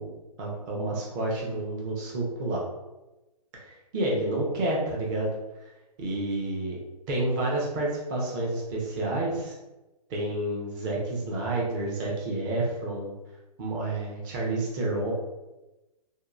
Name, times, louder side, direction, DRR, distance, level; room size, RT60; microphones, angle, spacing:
voice 1, 0.0-2.6 3.7-5.3 6.0-6.8 7.1-9.6 10.1-13.1 13.6-15.1, right 2 dB, 30° right, -3 dB, 0.7 m, -29 dB
2.7 x 2.2 x 2.4 m, 1.0 s
hypercardioid pair, 145°, 21 cm